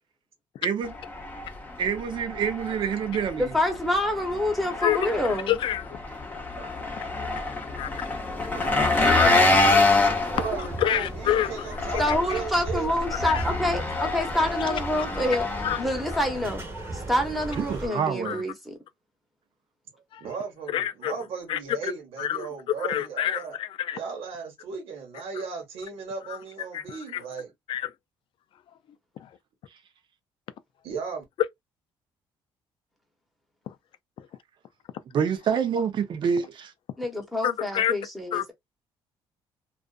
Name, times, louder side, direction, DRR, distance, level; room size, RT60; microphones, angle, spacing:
voice 1, 0.6-0.9 1.8-3.5 8.5-8.9 17.6-18.4 35.1-36.7, right 7 dB, 55° right, 0.6 m, -27 dB
Engine, 0.8-16.6, left 2 dB, 20° left, 0.7 m, -27 dB
voice 2, 3.4-5.5 8.9-9.6 12.0-15.5 15.8-16.6 16.9-18.8 37.0-38.5, left 1 dB, ahead, 1.0 m, -27 dB
voice 3, 4.8-6.0 7.8-7.9 9.7-10.0 10.6-12.4 13.2-13.4 15.6-15.8 18.2-18.4 20.1-20.2 20.7-21.1 21.5-21.9 22.2-24.0 26.3-26.4 26.7-27.2 27.7-27.9 29.2-29.3 33.7-33.8 37.4-38.0 38.3-38.5, left 11 dB, 60° left, 0.3 m, -28 dB
sound 1, 8.4-17.9, right 2 dB, 25° right, 1.0 m, -37 dB
voice 4, 10.3-12.9 20.2-23.6 23.9-27.5 30.8-31.2, right 5 dB, 75° right, 1.1 m, -36 dB
2.4 x 2.4 x 2.3 m
cardioid pair, 115°, 10 cm